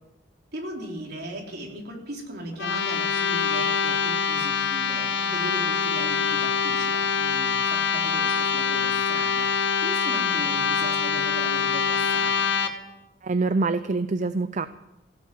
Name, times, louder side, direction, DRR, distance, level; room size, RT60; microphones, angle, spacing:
voice 1, 0.5-12.5, right 1 dB, 60° right, 0 dB, 3.6 m, -37 dB
sound 1, 2.5-12.7, left 6 dB, 70° left, 1.7 m, -24 dB
voice 2, 13.2-14.7, right 3 dB, 40° right, 12 dB, 0.5 m, -25 dB
16.5 x 8.6 x 9.2 m, 0.94 s
head